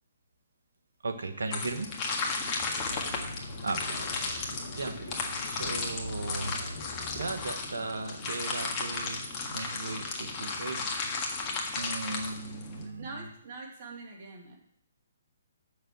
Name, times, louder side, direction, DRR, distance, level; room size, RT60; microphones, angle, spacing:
voice 1, 1.0-1.9 3.6-6.8 7.1-11.0 11.8-13.3, right 3 dB, 75° right, 7 dB, 1.3 m, -37 dB
sound 1, 1.5-12.9, left 4 dB, 30° left, 1.7 m, -34 dB
sound 2, 2.4-7.5, left 1 dB, 70° left, 1.5 m, -43 dB
voice 2, 12.8-14.6, right 3 dB, 45° right, 1 dB, 2.3 m, -44 dB
6.9 x 6.7 x 7.6 m, 0.65 s
figure-of-eight pair, 135°, 0 cm